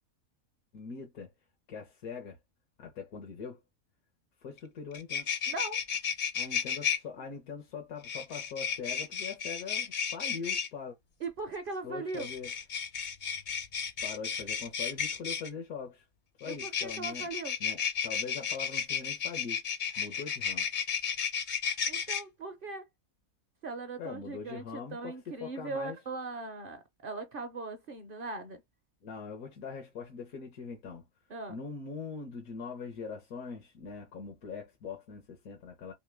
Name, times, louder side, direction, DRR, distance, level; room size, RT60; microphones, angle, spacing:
voice 1, 0.7-1.3 1.7-2.4 2.8-3.6 4.4-5.3 6.3-11.0 11.8-12.5 14.0-16.1 16.4-17.3 17.6-19.6 20.0-20.7 24.0-26.0 29.0-31.0 31.5-35.9, left 5 dB, 80° left, 1.4 m, -42 dB
sound 1, 4.6-4.7 4.9-7.0 8.0-10.7 12.1-15.5 16.4-22.2, left 7 dB, 50° left, 0.6 m, -33 dB
voice 2, 5.5-5.8 11.2-12.3 16.4-17.6 21.9-22.9 23.6-28.6 31.3-31.6, right 3 dB, 50° right, 0.7 m, -39 dB
3.6 x 2.9 x 3.3 m
omnidirectional pair, 1.5 m